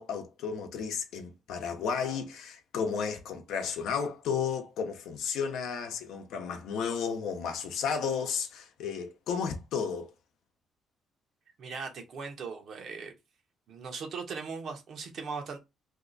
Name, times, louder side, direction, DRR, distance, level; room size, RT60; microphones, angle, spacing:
voice 1, 0.0-10.1, left 6 dB, 85° left, 0.7 m, -33 dB
voice 2, 11.6-13.1 13.7-15.6, right 5 dB, 65° right, 0.9 m, -39 dB
2.8 x 2.3 x 3.8 m
cardioid pair, 90°, 0 cm